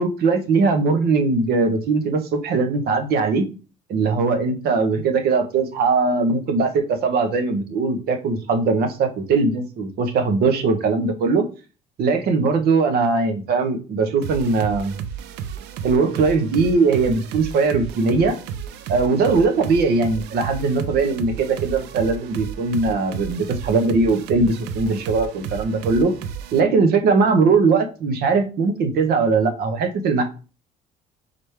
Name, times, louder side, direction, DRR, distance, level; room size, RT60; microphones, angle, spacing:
voice 1, 0.0-3.5 3.9-11.4 12.0-15.0 15.8-18.4 18.9-26.1 26.5-30.2, right 4 dB, 65° right, 6 dB, 0.9 m, -20 dB
sound 1, 14.2-26.6, right 7 dB, 90° right, 0.5 m, -33 dB
4.2 x 3.1 x 3.3 m, 0.34 s
cardioid pair, 110°, 17 cm